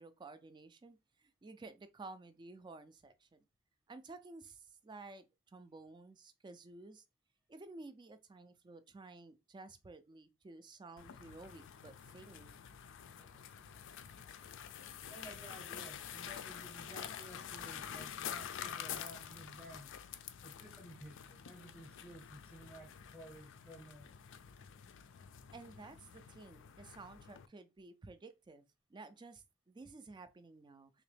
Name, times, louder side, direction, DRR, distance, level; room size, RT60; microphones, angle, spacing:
voice 1, 0.0-3.4 3.9-7.0 7.5-12.6 25.5-30.9, right 3 dB, 20° right, 0.3 m, -53 dB
sound 1, 11.0-27.5, left 8 dB, 60° left, 0.4 m, -48 dB
voice 2, 13.2-14.3 14.6-20.0 20.4-24.1, right 1 dB, 5° left, 0.8 m, -55 dB
3.5 x 2.9 x 3.3 m
head